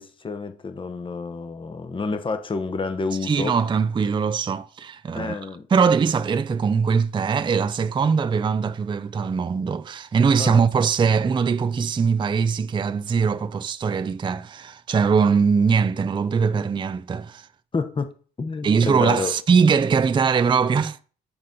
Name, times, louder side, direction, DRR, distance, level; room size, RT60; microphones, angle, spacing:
voice 1, 0.0-3.5 5.1-5.6 10.4-10.6 17.7-19.3, left 4 dB, 25° left, 0.9 m, -29 dB
voice 2, 3.2-5.4 5.7-17.5 18.6-21.1, right 5 dB, 25° right, 0.4 m, -21 dB
9.7 x 4.1 x 5.2 m
cardioid pair, 90°, 20 cm